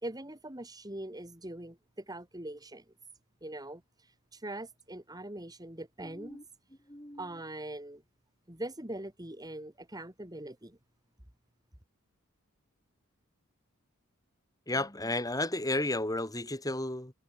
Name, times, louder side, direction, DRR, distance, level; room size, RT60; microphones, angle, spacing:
voice 1, 0.0-2.9 3.4-6.4 7.2-8.0 8.5-10.8, right 1 dB, 20° right, 3.6 m, -42 dB
voice 2, 6.0-6.4 6.9-7.2 14.7-17.1, left 2 dB, 15° left, 7.6 m, -33 dB
head